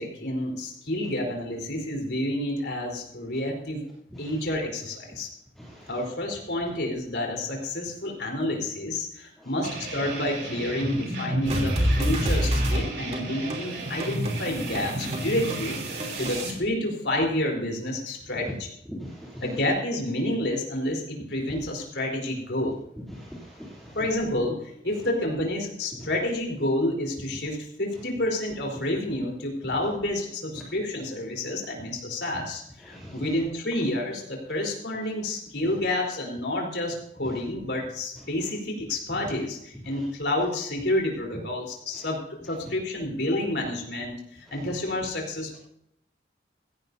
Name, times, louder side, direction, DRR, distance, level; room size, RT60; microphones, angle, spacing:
voice 1, 0.0-3.8 4.2-5.3 5.9-18.7 19.4-22.8 23.9-45.6, left 1 dB, 75° left, 0 dB, 3.8 m, -29 dB
voice 2, 5.6-5.9 9.4-9.5 12.1-12.2 18.9-19.6 23.1-24.0 32.9-33.2, equal, ahead, -7 dB, 2.9 m, -40 dB
sound 1, 9.6-16.5, right 1 dB, 75° right, 3.2 m, -33 dB
sound 2, 11.5-16.5, equal, 40° right, 3.1 m, -28 dB
16.0 x 15.5 x 2.7 m, 0.74 s
head